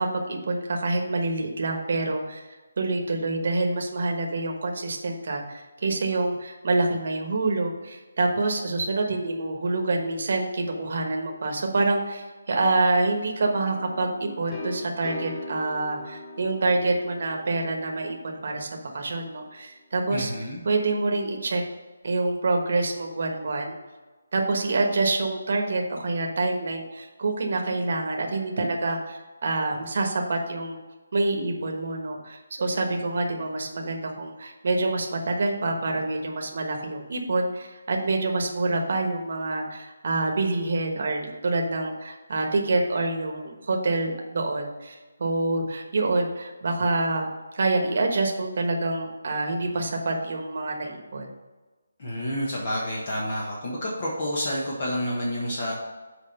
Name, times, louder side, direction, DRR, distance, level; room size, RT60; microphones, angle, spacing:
voice 1, 0.0-20.3 20.6-21.6 22.0-23.7 24.3-30.8 31.1-47.3 47.5-51.3, right 2 dB, 45° right, 2 dB, 1.2 m, -26 dB
sound 1, 13.4-19.1, left 2 dB, 10° left, 0.7 m, -41 dB
voice 2, 20.1-20.6 52.0-55.7, equal, 35° left, -4 dB, 1.3 m, -29 dB
6.6 x 4.8 x 5.4 m, 1.2 s
hypercardioid pair, 175°, 0 cm